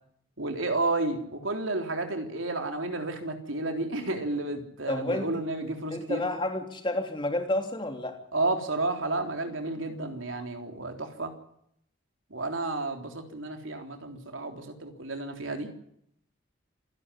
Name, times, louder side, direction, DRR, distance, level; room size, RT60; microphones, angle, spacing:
voice 1, 0.4-6.2 8.3-11.3 12.3-15.7, right 2 dB, 85° right, 4 dB, 3.7 m, -31 dB
voice 2, 4.9-5.3 5.9-8.2, left 1 dB, 25° left, 4 dB, 3.1 m, -30 dB
27.5 x 11.5 x 9.9 m, 0.74 s
head